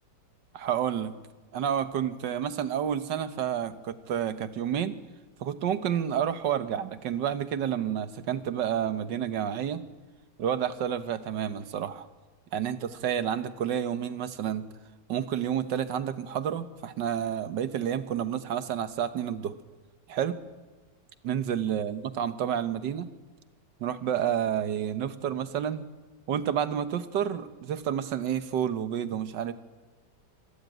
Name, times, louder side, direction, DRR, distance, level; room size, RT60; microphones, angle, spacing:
voice 1, 0.5-1.2 1.5-5.0 5.4-9.8 10.4-12.1 12.5-14.7 15.1-19.6 20.1-20.4 21.2-23.1 23.8-25.9 26.3-29.5, right 9 dB, 90° right, 11 dB, 1.7 m, -30 dB
25.5 x 14.5 x 9.3 m, 1.3 s
omnidirectional pair, 1.8 m